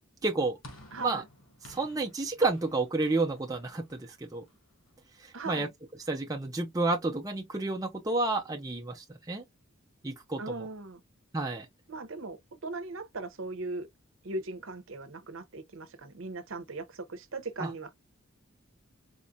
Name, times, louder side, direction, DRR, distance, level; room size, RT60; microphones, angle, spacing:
voice 1, 0.2-0.6 1.0-1.2 1.6-4.4 5.2-5.7 6.1-9.4 10.0-10.5 11.3-11.7 17.6-17.7, right 3 dB, 15° right, 0.6 m, -30 dB
sound 1, 0.6-5.1, left 1 dB, 70° left, 1.4 m, -54 dB
voice 2, 0.9-1.3 5.3-5.7 10.4-11.0 11.9-13.9 14.2-17.9, right 3 dB, 60° right, 0.8 m, -38 dB
4.3 x 2.4 x 2.7 m
head